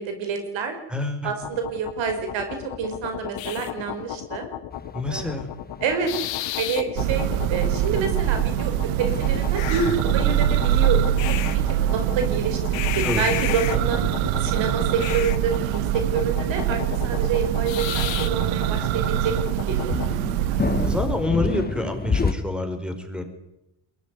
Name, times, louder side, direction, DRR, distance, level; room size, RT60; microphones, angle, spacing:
voice 1, 0.0-0.7 1.2-4.4 5.1-5.3 5.8-6.1 6.6-14.0 14.4-19.4 19.7-19.9 20.4-20.6, right 5 dB, 70° right, 6 dB, 5.4 m, -28 dB
voice 2, 0.9-1.3 4.9-5.5 13.0-13.3 20.8-23.2, left 1 dB, ahead, 7 dB, 5.2 m, -27 dB
sound 1, 1.4-20.1, left 13 dB, 70° left, 2.0 m, -33 dB
sound 2, 4.7-22.3, left 4 dB, 20° left, 1.5 m, -33 dB
Church bell, 7.0-21.3, right 12 dB, 90° right, 1.2 m, -24 dB
22.5 x 18.5 x 9.8 m, 0.89 s
supercardioid pair, 75°, 47 cm